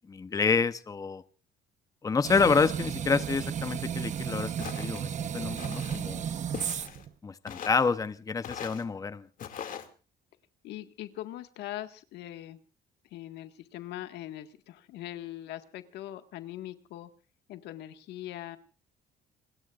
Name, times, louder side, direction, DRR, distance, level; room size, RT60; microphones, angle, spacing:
voice 1, 0.1-1.2 2.0-4.5 4.8-6.2 7.2-9.3, left 4 dB, 20° left, 13 dB, 0.8 m, -28 dB
sound 1, 2.2-7.1, right 8 dB, 45° right, 1.0 m, -34 dB
Walk footsteps, 4.6-5.0 5.6-6.0 6.5-7.1 7.5-7.9 8.4-8.8 9.4-9.9, left 8 dB, 55° left, 2.4 m, -41 dB
voice 2, 10.6-12.6 13.1-17.1 17.5-18.6, left 13 dB, 80° left, 8 dB, 1.7 m, -41 dB
28.5 x 20.0 x 2.5 m, 0.37 s
cardioid pair, 110°, 17 cm